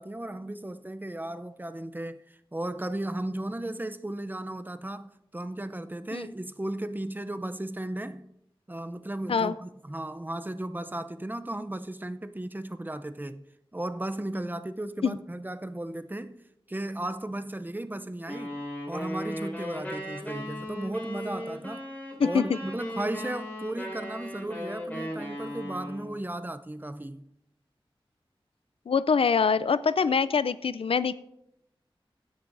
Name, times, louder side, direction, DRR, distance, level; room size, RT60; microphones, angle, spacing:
voice 1, 0.0-8.3 8.7-13.4 13.7-16.4 16.7-18.6 18.9-21.9 22.2-27.2, right 1 dB, 20° right, 0.6 m, -35 dB
sound 1, 18.3-26.2, equal, 15° left, 4.7 m, -37 dB
voice 2, 22.2-22.6 28.9-31.1, left 5 dB, 80° left, 0.4 m, -24 dB
16.0 x 10.5 x 2.6 m
wide cardioid pair, 50°, 9 cm